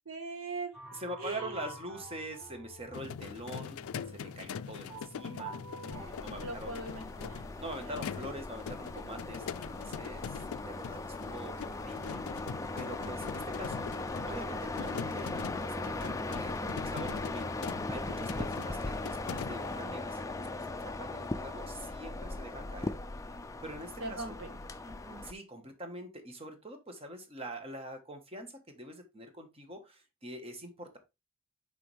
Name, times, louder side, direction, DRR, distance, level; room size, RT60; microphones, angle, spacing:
voice 1, 0.1-0.8 1.2-1.7 6.4-7.5 7.8-8.0 24.0-24.6 24.8-25.2, right 3 dB, 75° right, 5 dB, 1.7 m, -41 dB
sound 1, 0.7-6.1, right 2 dB, 5° right, 1.4 m, -48 dB
voice 2, 0.9-6.8 7.6-12.2 12.8-13.9 14.3-16.6 16.8-17.5 17.9-22.9 23.6-24.4 25.2-31.0, right 1 dB, 30° right, 5 dB, 1.3 m, -44 dB
sound 2, 2.9-19.8, left 7 dB, 90° left, 0.4 m, -43 dB
sound 3, 5.9-25.3, left 2 dB, 15° left, 0.4 m, -38 dB
6.8 x 5.1 x 3.3 m, 0.24 s
head